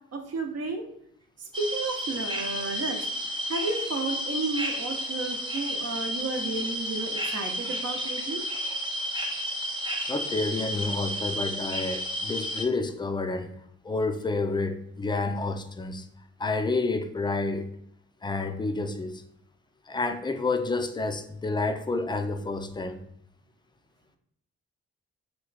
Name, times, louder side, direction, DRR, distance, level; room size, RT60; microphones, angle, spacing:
voice 1, 0.1-0.8 1.4-3.0 3.5-8.4, right 3 dB, 55° right, 0.8 m, -32 dB
sound 1, 1.5-12.6, equal, 15° right, 0.8 m, -32 dB
voice 2, 10.1-13.5 13.8-16.1 16.4-17.7 18.2-19.2 19.9-23.0, left 3 dB, 15° left, 0.4 m, -29 dB
3.0 x 2.2 x 4.0 m
cardioid pair, 55°, 30 cm